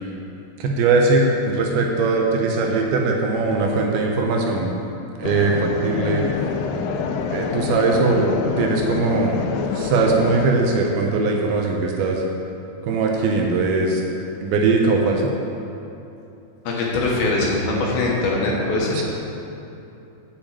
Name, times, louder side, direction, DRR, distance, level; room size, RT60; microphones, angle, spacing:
voice 1, 0.6-4.7 5.2-6.2 7.3-9.4 9.8-12.2 12.9-14.0 14.4-15.2 19.0-19.1, right 3 dB, 80° right, 1 dB, 2.5 m, -20 dB
sound 1, 5.2-10.5, left 5 dB, 85° left, 2.6 m, -26 dB
voice 2, 16.6-19.0, left 2 dB, 70° left, -3 dB, 2.9 m, -22 dB
7.3 x 6.7 x 7.6 m, 2.8 s
omnidirectional pair, 4.7 m